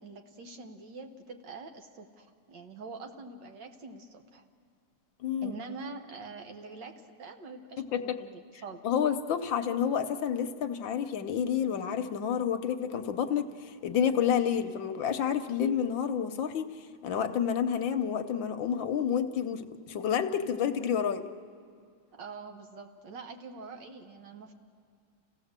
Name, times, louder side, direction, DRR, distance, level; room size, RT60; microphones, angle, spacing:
voice 1, 0.0-4.4 5.4-8.9 22.1-24.5, right 4 dB, 60° right, 5 dB, 1.8 m, -45 dB
voice 2, 5.2-5.6 7.8-8.2 8.8-21.2, left 8 dB, 70° left, 8 dB, 1.4 m, -29 dB
29.5 x 16.0 x 7.3 m, 2.2 s
omnidirectional pair, 2.3 m